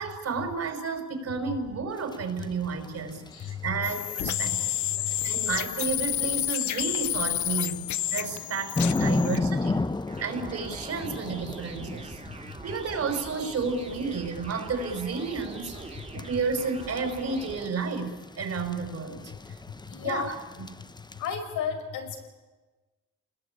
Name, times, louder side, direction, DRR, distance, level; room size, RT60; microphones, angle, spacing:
voice 1, 0.0-4.6 5.2-9.8 10.2-12.2 12.6-19.3 20.0-20.3 20.6-20.7, right 5 dB, 55° right, 6 dB, 5.4 m, -32 dB
sound 1, 2.0-21.3, left 3 dB, 15° left, 0.9 m, -35 dB
voice 2, 3.3-3.7 4.4-4.5 5.0-5.2 10.1-10.2 11.0-11.1 15.8-16.2 19.9-20.3 21.2-22.2, left 7 dB, 90° left, 5 dB, 5.1 m, -34 dB
sound 2, 3.8-9.4, left 13 dB, 70° left, 0.9 m, -30 dB
sound 3, 10.1-17.7, right 3 dB, 20° right, 3.2 m, -43 dB
29.0 x 20.5 x 8.7 m, 1.3 s
cardioid pair, 90°, 30 cm